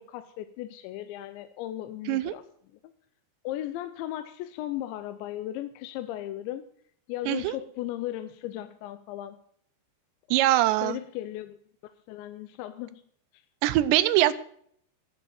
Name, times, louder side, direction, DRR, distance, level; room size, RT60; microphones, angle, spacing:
voice 1, 0.0-2.4 3.4-6.7 7.1-9.4 10.8-11.6 12.1-13.0 13.3-13.4, left 13 dB, 85° left, 11 dB, 3.0 m, -36 dB
voice 2, 10.3-11.0 13.6-14.3, right 15 dB, 80° right, 13 dB, 3.0 m, -22 dB
12.5 x 9.0 x 7.6 m, 0.63 s
omnidirectional pair, 5.1 m